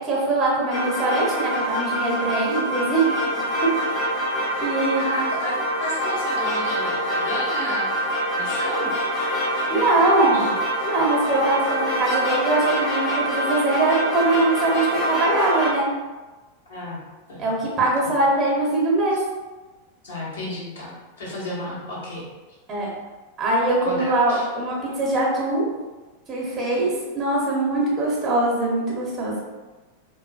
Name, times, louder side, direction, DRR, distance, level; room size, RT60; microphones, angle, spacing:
voice 1, 0.0-3.2 4.6-5.0 9.7-10.4 10.8-15.9 17.4-19.2 22.7-22.9 23.4-25.7 26.3-29.4, right 2 dB, 25° right, -3 dB, 0.8 m, -22 dB
sound 1, 0.7-15.7, equal, 45° left, 0.8 m, -25 dB
voice 2, 4.9-8.0 8.3-9.0 9.7-10.5 16.7-17.0 17.3-17.5 18.0-18.1 19.1-19.2 20.0-22.2 23.8-24.5, left 1 dB, 65° left, -8 dB, 1.1 m, -33 dB
2.5 x 2.5 x 2.3 m, 1.2 s
figure-of-eight pair, 90°, 0 cm